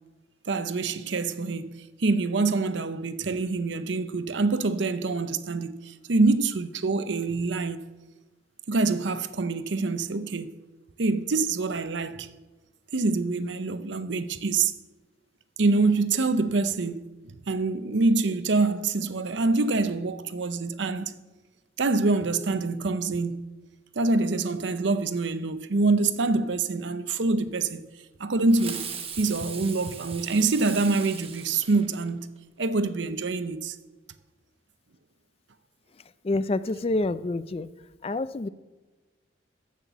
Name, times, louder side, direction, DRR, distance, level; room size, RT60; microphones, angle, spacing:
voice 1, 0.5-7.8 8.7-10.5 11.0-12.3 12.9-14.7 15.6-17.1 17.5-21.1 21.8-23.5 24.0-27.8 28.2-32.3 32.6-33.8, right 3 dB, 70° right, 0.7 m, -25 dB
Fireworks, 28.5-32.4, right 7 dB, 30° right, 1.1 m, -39 dB
voice 2, 36.2-37.7 38.0-38.5, left 2 dB, 30° left, 0.4 m, -27 dB
13.5 x 5.9 x 7.2 m
head